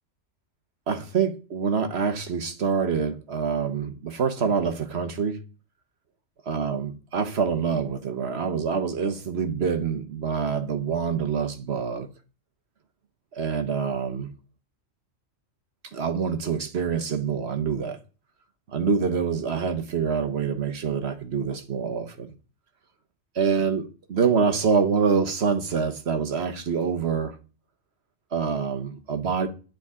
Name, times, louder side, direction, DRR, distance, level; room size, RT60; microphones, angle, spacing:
voice 1, 0.9-5.4 6.5-12.1 13.3-14.3 15.9-18.0 18.7-22.3 23.3-27.4 28.3-29.5, right 6 dB, 55° right, 1.3 m, -26 dB
10.0 x 9.1 x 3.7 m
omnidirectional pair, 1.4 m